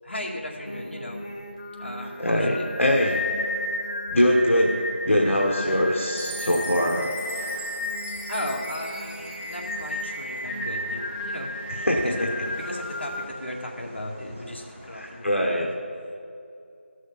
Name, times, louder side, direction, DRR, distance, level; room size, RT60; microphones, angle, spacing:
voice 1, 0.0-1.2 1.8-2.7 8.3-11.6 11.9-15.7, left 1 dB, 60° left, -2 dB, 2.2 m, -36 dB
Singing, 0.6-13.3, left 1 dB, 35° left, 1.1 m, -33 dB
voice 2, 2.2-3.2 4.1-4.7 5.0-7.1 11.9-12.3 14.9-15.7, equal, 80° left, -1 dB, 1.3 m, -22 dB
Train, 5.0-15.5, equal, 10° left, 0.9 m, -48 dB
Chime, 6.2-10.4, right 2 dB, 45° right, 2.5 m, -42 dB
13.5 x 6.3 x 5.5 m, 2.6 s
figure-of-eight pair, 175°, 7 cm